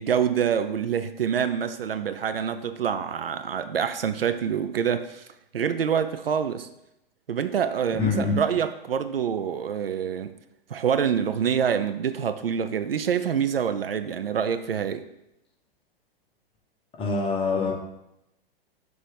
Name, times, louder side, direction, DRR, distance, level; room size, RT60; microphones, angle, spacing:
voice 1, 0.0-5.2 5.5-6.7 7.3-10.3 10.7-15.1, right 8 dB, 75° right, 10 dB, 0.5 m, -26 dB
voice 2, 8.0-8.4 17.0-17.7, left 4 dB, 20° left, -1 dB, 1.2 m, -24 dB
6.0 x 3.5 x 5.1 m, 0.85 s
figure-of-eight pair, 110°, 30 cm